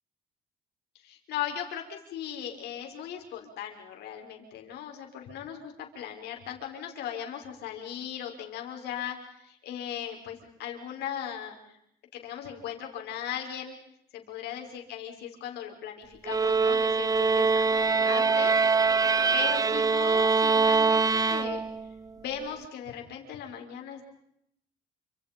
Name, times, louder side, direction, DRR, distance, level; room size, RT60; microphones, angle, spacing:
voice 1, 0.9-11.8 12.1-13.7 14.1-18.5 19.3-21.6 22.2-24.0, left 9 dB, 75° left, 3 dB, 5.9 m, -38 dB
sound 1, 16.3-21.9, right 4 dB, 20° right, 0.9 m, -23 dB
29.5 x 27.0 x 5.4 m, 0.76 s
cardioid pair, 110°, 17 cm